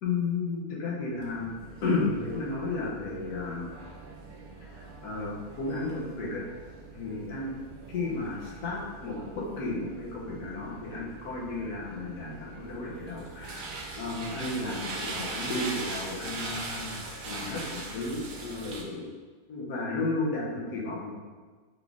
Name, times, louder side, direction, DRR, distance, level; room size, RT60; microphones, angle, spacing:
voice 1, 0.0-3.7 4.6-6.4 6.9-7.5 7.9-13.6 14.0-17.0 17.2-19.1 19.5-21.2, left 3 dB, 75° left, -5 dB, 1.4 m, -33 dB
sound 1, 1.1-18.8, right 3 dB, 75° right, 0.4 m, -41 dB
4.1 x 3.6 x 3.5 m, 1.4 s
omnidirectional pair, 1.6 m